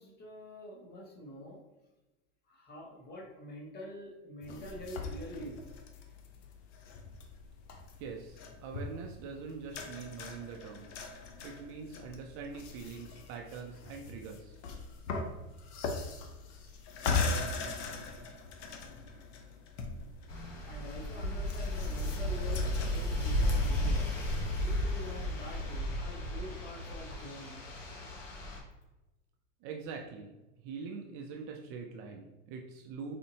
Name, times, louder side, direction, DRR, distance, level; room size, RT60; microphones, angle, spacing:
voice 1, 0.0-1.6 2.5-5.7 20.7-24.1 24.5-27.6, equal, 25° left, 0 dB, 0.9 m, -46 dB
sound 1, 4.4-23.8, left 4 dB, 65° left, 0.7 m, -40 dB
voice 2, 8.0-11.1 11.4-14.6 29.6-30.3 30.6-33.2, right 5 dB, 40° right, 2 dB, 0.4 m, -43 dB
sound 2, 20.3-28.6, left 1 dB, 90° left, 1.0 m, -33 dB
4.2 x 2.6 x 2.7 m, 1.0 s
hypercardioid pair, 115°, 36 cm